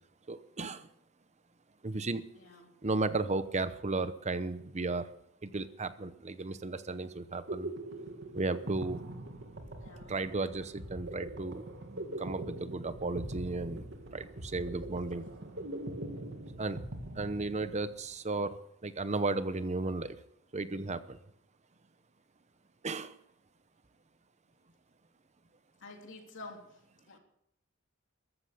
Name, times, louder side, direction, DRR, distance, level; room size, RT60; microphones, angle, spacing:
voice 1, 0.3-0.9 1.8-2.2 2.8-5.1 5.4-7.7 8.3-9.0 10.1-11.6 11.9-13.9 14.1-15.2 16.6-16.8 17.1-20.2 20.5-21.2 22.8-23.2, right 3 dB, 35° right, 12 dB, 0.8 m, -34 dB
voice 2, 2.3-2.7 9.8-10.1 25.8-26.6 27.1-27.2, left 2 dB, 65° left, 2 dB, 3.4 m, -48 dB
sound 1, 7.2-18.0, right 1 dB, 60° right, 2.0 m, -42 dB
14.0 x 13.5 x 6.7 m, 0.75 s
head